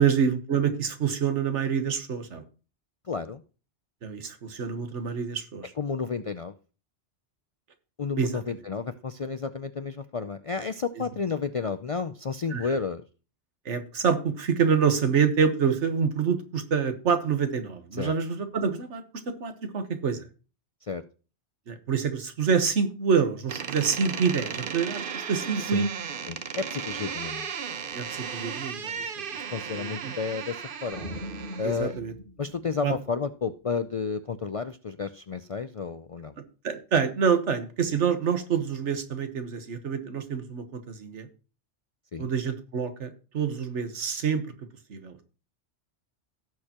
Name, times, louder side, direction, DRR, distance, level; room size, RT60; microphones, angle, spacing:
voice 1, 0.0-2.4 4.0-5.7 8.2-8.4 12.5-12.7 13.6-20.3 21.7-25.9 27.9-29.0 29.7-30.1 31.6-32.1 32.8-32.9 36.6-41.3 42.2-44.4 44.9-45.2, right 6 dB, 85° right, 8 dB, 1.5 m, -27 dB
voice 2, 3.0-3.4 5.8-6.5 8.0-13.0 17.9-18.1 20.8-21.0 25.6-25.9 26.3-27.5 29.5-31.1 31.6-31.9 32.4-36.3 42.1-42.3, left 5 dB, 55° left, 10 dB, 0.4 m, -31 dB
Door, 23.5-32.0, right 7 dB, 55° right, 0.8 m, -35 dB
sound 1, 30.9-33.4, equal, 30° left, 4.0 m, -41 dB
17.0 x 6.6 x 2.9 m, 0.34 s
omnidirectional pair, 1.2 m